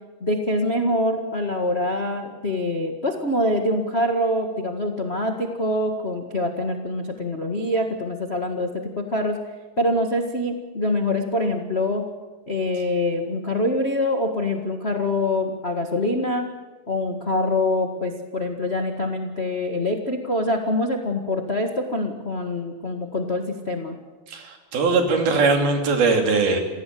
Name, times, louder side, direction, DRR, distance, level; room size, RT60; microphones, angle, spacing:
voice 1, 0.2-9.4 9.8-12.0 12.5-16.5 16.9-24.0, left 1 dB, 60° left, 3 dB, 0.6 m, -25 dB
voice 2, 24.3-26.6, right 3 dB, 75° right, 4 dB, 4.8 m, -20 dB
28.0 x 16.5 x 7.7 m, 1.4 s
omnidirectional pair, 4.4 m